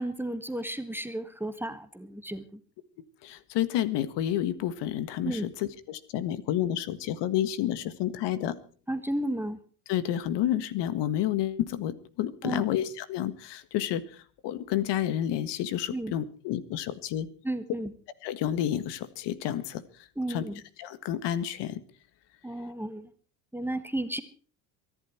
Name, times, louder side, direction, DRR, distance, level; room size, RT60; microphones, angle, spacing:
voice 1, 0.0-2.6 5.2-5.5 8.9-9.6 12.4-12.6 15.9-16.1 17.4-17.9 20.2-20.6 22.4-23.1 23.5-24.2, right 1 dB, 5° right, 10 dB, 1.6 m, -33 dB
voice 2, 3.2-8.6 9.9-17.3 18.2-19.8 20.3-20.4 20.8-21.8, left 11 dB, 60° left, 14 dB, 1.7 m, -30 dB
23.5 x 11.5 x 4.5 m, 0.41 s
hypercardioid pair, 85°, 48 cm